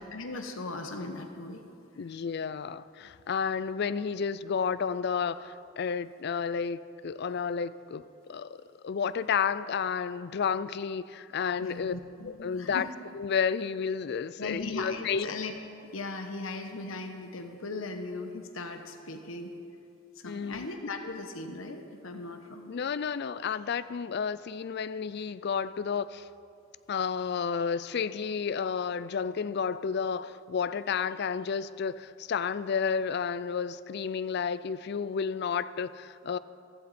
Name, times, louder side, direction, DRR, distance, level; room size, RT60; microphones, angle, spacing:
voice 1, 0.0-1.6 2.0-2.2 11.6-12.9 14.4-15.6 15.9-19.5 20.1-22.7, left 3 dB, 85° left, 1.2 m, -38 dB
voice 2, 2.0-11.9 12.2-12.9 13.1-15.3 20.3-20.7 22.7-26.3 26.9-36.4, left 6 dB, 55° left, 0.4 m, -31 dB
15.5 x 15.5 x 4.3 m
head